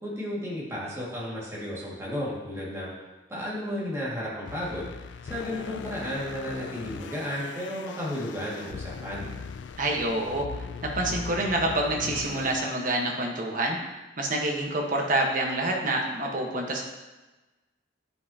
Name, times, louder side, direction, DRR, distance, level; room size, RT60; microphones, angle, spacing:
voice 1, 0.0-2.9 3.3-4.9 5.3-9.3, equal, 15° right, -6 dB, 1.9 m, -33 dB
sound 1, 4.4-12.6, left 5 dB, 70° left, 0.3 m, -39 dB
voice 2, 9.8-10.5 10.9-13.8 14.2-16.8, right 1 dB, 45° right, 1 dB, 1.1 m, -27 dB
9.4 x 5.5 x 2.8 m, 1.1 s
head